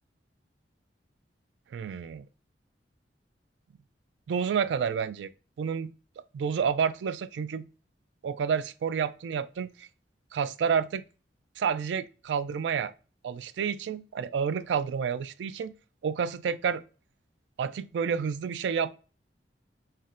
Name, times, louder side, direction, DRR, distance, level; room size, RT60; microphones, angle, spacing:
voice 1, 1.7-2.3 4.3-5.3 5.6-5.9 6.3-7.7 8.2-9.9 10.3-11.0 11.6-12.9 13.2-15.7 16.0-16.8 17.6-18.9, right 7 dB, 75° right, 0.3 m, -29 dB
5.6 x 2.1 x 2.5 m
head